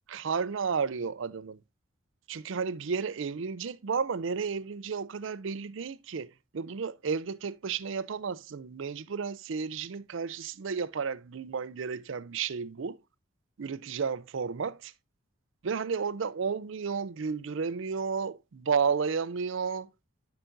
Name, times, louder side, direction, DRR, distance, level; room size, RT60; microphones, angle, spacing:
voice 1, 0.1-1.6 2.3-13.0 13.6-14.7 15.6-19.9, right 5 dB, 65° right, 0.5 m, -32 dB
12.5 x 5.8 x 2.5 m
head